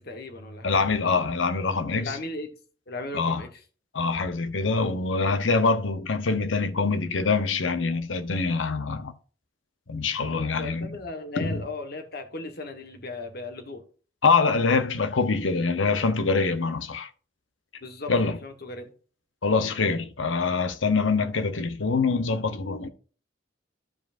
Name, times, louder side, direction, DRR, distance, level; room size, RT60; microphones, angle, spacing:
voice 1, 0.0-0.9 2.0-2.5 2.9-3.5 10.2-13.8 17.8-18.9, left 2 dB, 55° left, 1.4 m, -37 dB
voice 2, 0.6-2.2 3.1-3.4 3.9-9.1 9.9-11.0 11.4-11.6 14.2-17.1 18.1-18.4 19.4-22.9, left 4 dB, 80° left, 0.9 m, -24 dB
13.5 x 5.0 x 2.6 m
head